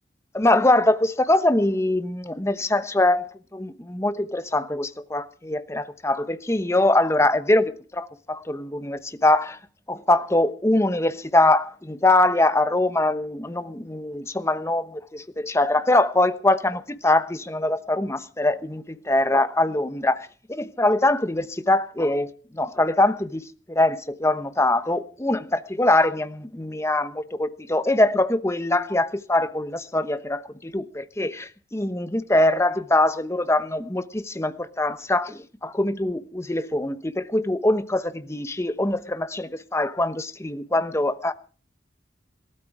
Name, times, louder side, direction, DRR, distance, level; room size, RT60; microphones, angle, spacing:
voice 1, 0.3-3.3 3.5-9.6 9.9-20.2 20.5-22.3 22.5-41.3, left 2 dB, 15° left, 1.0 m, -23 dB
19.5 x 13.0 x 4.8 m
head